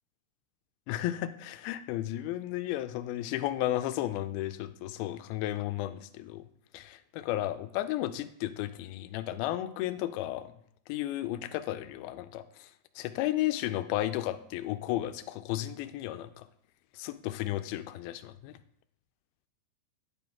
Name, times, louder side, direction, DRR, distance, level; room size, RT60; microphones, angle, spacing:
voice 1, 0.9-6.4 6.7-10.5 10.9-12.7 13.0-16.5 16.9-18.6, left 14 dB, 90° left, 11 dB, 2.5 m, -33 dB
10.0 x 6.8 x 3.6 m, 0.67 s
omnidirectional pair, 4.2 m